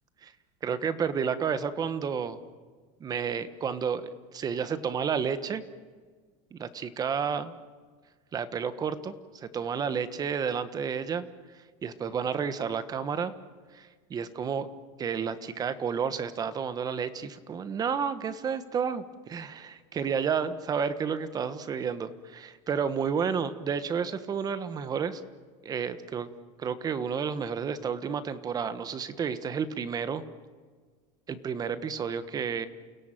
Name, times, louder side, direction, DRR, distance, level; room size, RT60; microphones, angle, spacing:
voice 1, 0.6-2.4 3.0-5.6 6.5-7.5 8.3-11.3 11.8-13.3 13.7-14.7 15.0-25.2 25.6-26.3 26.6-30.2 31.3-32.7, right 6 dB, 25° right, 12 dB, 1.3 m, -31 dB
29.5 x 17.0 x 9.1 m, 1.5 s
cardioid pair, 160°, 16 cm